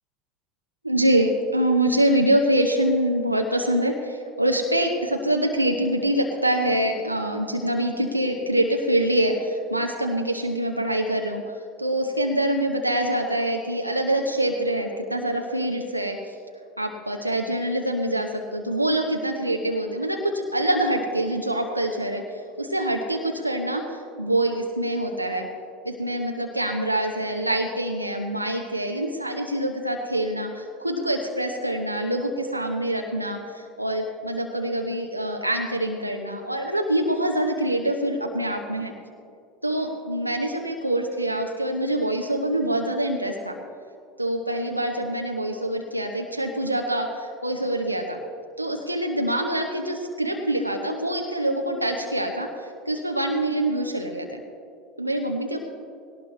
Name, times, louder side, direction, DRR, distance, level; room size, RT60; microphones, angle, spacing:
voice 1, 0.8-11.4 11.8-16.2 16.8-25.5 25.8-38.9 39.6-43.6 44.2-48.2 48.6-54.4 55.0-55.6, right 1 dB, 90° right, 2 dB, 0.9 m, -25 dB
19.5 x 18.0 x 3.3 m, 2.4 s
figure-of-eight pair, 75°, 0 cm